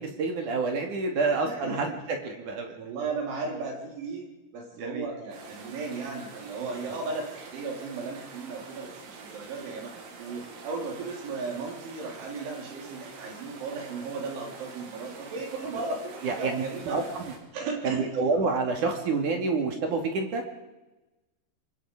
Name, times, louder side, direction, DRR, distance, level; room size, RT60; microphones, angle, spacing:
voice 1, 0.0-1.9 2.2-2.8 4.8-5.1 6.6-6.8 16.2-17.3 17.8-20.4, right 4 dB, 45° right, 3 dB, 3.2 m, -28 dB
voice 2, 1.4-2.0 2.7-4.3 4.5-17.0 17.5-18.1, right 4 dB, 65° right, 0 dB, 6.4 m, -35 dB
sound 1, 5.3-17.4, right 4 dB, 80° right, 5.6 m, -46 dB
25.5 x 22.5 x 5.0 m, 1.1 s
omnidirectional pair, 5.9 m